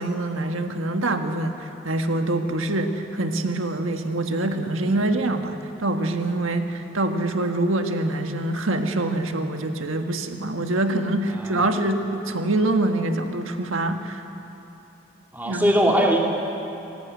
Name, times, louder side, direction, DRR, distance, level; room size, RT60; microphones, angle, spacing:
voice 1, 0.0-14.2 15.4-15.7, right 2 dB, 85° right, 5 dB, 1.6 m, -25 dB
voice 2, 11.4-11.7 15.3-16.2, equal, 10° right, -1 dB, 2.7 m, -21 dB
25.0 x 17.5 x 9.3 m, 2.8 s
head